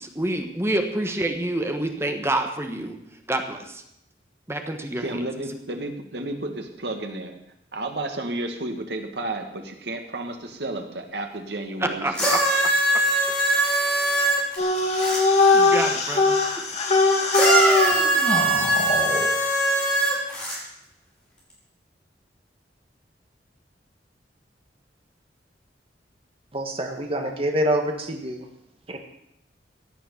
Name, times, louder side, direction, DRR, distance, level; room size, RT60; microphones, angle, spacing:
voice 1, 0.0-3.0 3.3-3.8 4.5-5.2 11.8-12.4 15.0-16.3, right 1 dB, 15° right, 5 dB, 1.3 m, -28 dB
voice 2, 5.0-7.4 7.7-12.3, right 2 dB, 70° right, 4 dB, 2.1 m, -32 dB
sound 1, 12.1-15.2 17.3-20.6 21.5-21.6, right 1 dB, 5° left, 5.2 m, -21 dB
sound 2, 14.6-19.3, left 3 dB, 40° left, 2.4 m, -21 dB
voice 3, 26.5-28.5 28.9-29.0, equal, 30° right, 3 dB, 1.7 m, -26 dB
16.5 x 9.0 x 7.2 m, 0.80 s
head